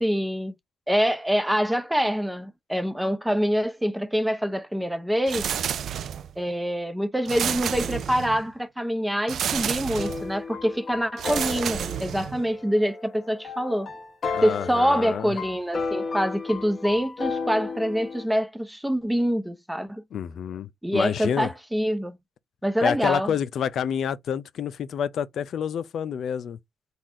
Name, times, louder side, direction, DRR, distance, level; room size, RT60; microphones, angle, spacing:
voice 1, 0.0-0.6 0.9-5.5 6.4-13.9 14.4-20.0 20.8-22.2 22.6-23.3, equal, 5° right, 0.8 m, -25 dB
sound 1, 5.3-6.4 7.3-8.5 9.3-10.3 11.2-12.5, right 8 dB, 65° right, 0.4 m, -30 dB
sound 2, 10.0-18.2, left 4 dB, 40° left, 1.2 m, -34 dB
voice 2, 14.3-15.3 20.1-21.5 22.8-26.6, left 8 dB, 65° left, 0.5 m, -28 dB
4.0 x 2.5 x 4.7 m
cardioid pair, 90°, 0 cm